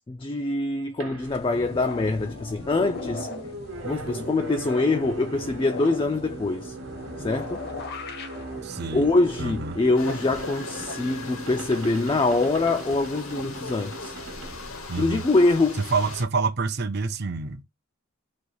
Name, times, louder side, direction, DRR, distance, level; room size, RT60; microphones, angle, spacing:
voice 1, 0.0-3.3 3.8-6.8 7.2-7.6 8.9-14.1 15.0-15.8, left 2 dB, 25° left, 0.3 m, -24 dB
sound 1, 1.0-15.5, right 2 dB, 65° right, 1.0 m, -39 dB
sound 2, 1.2-10.1, left 3 dB, 50° left, 0.7 m, -39 dB
voice 2, 8.6-9.1 9.4-9.8 14.9-15.2 15.8-17.6, right 4 dB, 50° right, 0.6 m, -27 dB
sound 3, 10.0-16.2, left 4 dB, 80° left, 1.0 m, -39 dB
4.0 x 2.3 x 4.6 m
head